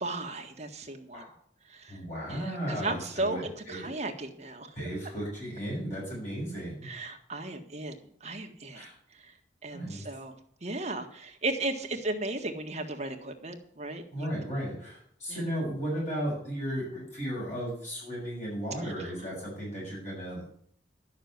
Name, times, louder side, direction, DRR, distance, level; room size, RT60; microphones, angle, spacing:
voice 1, 0.0-1.3 1.7-2.0 2.3-4.7 6.8-8.8 9.2-9.3 9.6-10.3 10.6-14.3 15.3-15.4 18.8-18.9, right 2 dB, 40° right, 5 dB, 1.5 m, -35 dB
voice 2, 1.9-3.9 4.7-6.9 8.7-8.9 9.7-10.1 14.1-20.5, equal, 40° left, -5 dB, 6.8 m, -35 dB
12.0 x 6.6 x 9.4 m, 0.63 s
head